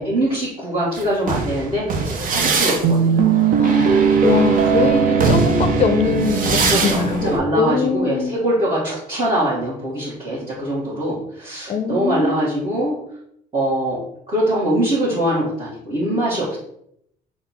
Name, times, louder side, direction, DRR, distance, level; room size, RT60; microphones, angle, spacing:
voice 1, 0.0-3.4 4.8-4.9 6.7-12.9 13.5-14.0 14.3-16.6, right 1 dB, 30° right, -9 dB, 1.6 m, -23 dB
sound 1, 1.0-7.4, right 5 dB, 55° right, 0.7 m, -18 dB
voice 2, 3.6-8.4 11.7-12.7, left 5 dB, 40° left, 7 dB, 0.5 m, -22 dB
4.1 x 2.3 x 4.2 m, 0.73 s
cardioid pair, 110°, 17 cm